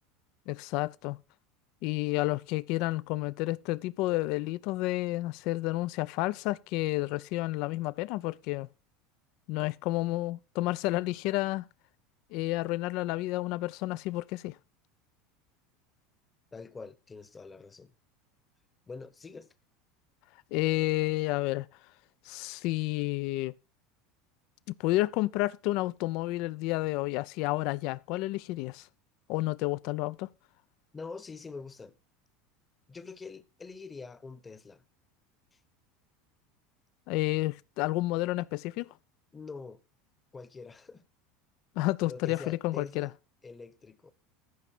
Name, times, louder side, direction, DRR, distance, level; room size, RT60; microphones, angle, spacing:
voice 1, 0.5-1.2 1.8-8.7 9.5-11.6 12.3-14.5 20.5-21.7 22.3-23.5 24.8-28.9 29.3-30.3 37.1-38.9 41.8-43.1, left 19 dB, 60° left, 0.4 m, -30 dB
voice 2, 16.5-17.9 18.9-19.5 30.9-32.0 32.9-34.8 35.5-35.6 39.3-39.8 40.3-41.0 42.0-43.1 43.4-44.1, left 4 dB, 20° left, 1.0 m, -45 dB
14.5 x 5.8 x 4.5 m
hypercardioid pair, 75°, 0 cm